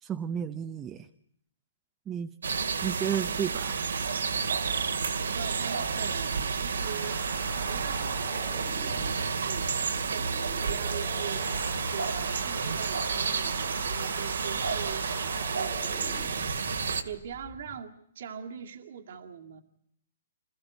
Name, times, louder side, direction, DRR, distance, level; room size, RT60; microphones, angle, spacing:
voice 1, 0.0-1.1 2.1-2.3 2.8-3.8, right 9 dB, 15° right, 6 dB, 0.9 m, -32 dB
sound 1, 2.4-17.0, right 5 dB, 90° right, 2.3 m, -30 dB
voice 2, 5.2-7.2 7.7-19.6, right 8 dB, 60° right, 2 dB, 2.2 m, -42 dB
sound 2, 6.8-17.8, left 7 dB, 15° left, 1.4 m, -47 dB
27.5 x 15.0 x 9.3 m, 0.72 s
hypercardioid pair, 150°, 0 cm